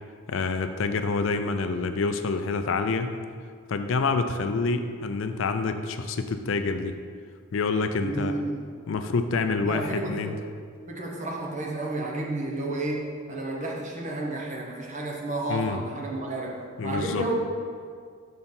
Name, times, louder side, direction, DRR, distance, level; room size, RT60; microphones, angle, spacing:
voice 1, 0.3-3.1 3.7-7.0 7.5-8.3 8.9-10.3 15.5-15.8 16.8-17.2, left 4 dB, 65° left, 8 dB, 0.4 m, -27 dB
voice 2, 8.0-8.9 9.6-10.5 10.9-17.3, right 2 dB, 35° right, -1 dB, 0.9 m, -32 dB
6.5 x 4.5 x 5.4 m, 2.1 s
head